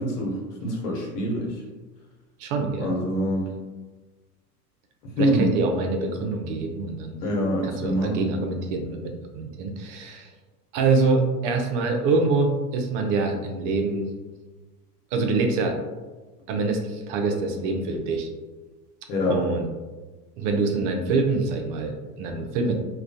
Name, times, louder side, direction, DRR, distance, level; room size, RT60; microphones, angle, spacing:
voice 1, 0.0-1.6 2.8-3.5 5.0-5.5 7.2-8.2 19.1-19.4, equal, 75° left, -2 dB, 1.0 m, -25 dB
voice 2, 2.4-3.0 5.2-7.2 7.6-10.3 10.7-14.1 15.1-15.8 16.5-18.3 19.3-19.7 20.4-22.7, right 3 dB, 55° right, 4 dB, 0.5 m, -25 dB
2.2 x 2.2 x 2.6 m, 1.3 s
hypercardioid pair, 105°, 46 cm